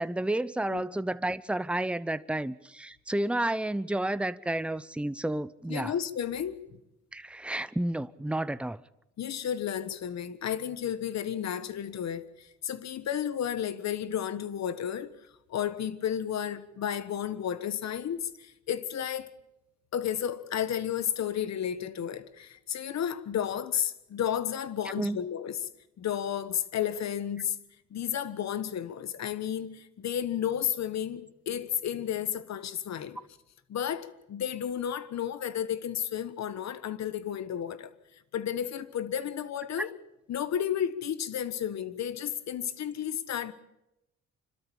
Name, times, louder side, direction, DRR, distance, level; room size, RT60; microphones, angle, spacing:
voice 1, 0.0-5.9 7.1-8.8 25.0-25.2 39.8-39.9, right 1 dB, 5° right, 0.7 m, -31 dB
voice 2, 5.7-6.7 9.2-15.1 15.5-19.3 19.9-25.6 26.0-27.6 27.9-33.2 33.7-37.9 38.3-39.9 40.3-43.5, left 9 dB, 60° left, 1.4 m, -32 dB
25.5 x 13.0 x 8.8 m
cardioid pair, 90°, 30 cm